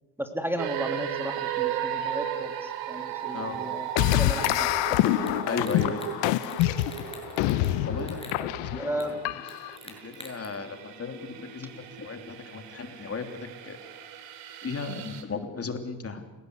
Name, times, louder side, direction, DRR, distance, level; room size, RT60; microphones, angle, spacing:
voice 1, 0.2-2.5 2.9-3.8 4.1-5.0 8.8-9.1, right 1 dB, 5° right, 5 dB, 2.7 m, -34 dB
sound 1, 0.6-15.2, right 10 dB, 90° right, 3.3 m, -36 dB
sound 2, 4.0-9.8, left 16 dB, 90° left, 0.9 m, -26 dB
sound 3, 5.3-5.4 5.6-6.1 6.4-7.7 8.0-8.4 9.0-9.1 9.5-10.5, left 2 dB, 15° left, 7.0 m, -45 dB
voice 2, 5.5-6.1 7.8-9.4 9.8-13.3 13.6-13.8 14.6-16.3, left 4 dB, 35° left, 6 dB, 3.1 m, -35 dB
29.0 x 17.0 x 8.1 m, 1.2 s
cardioid pair, 90°, 42 cm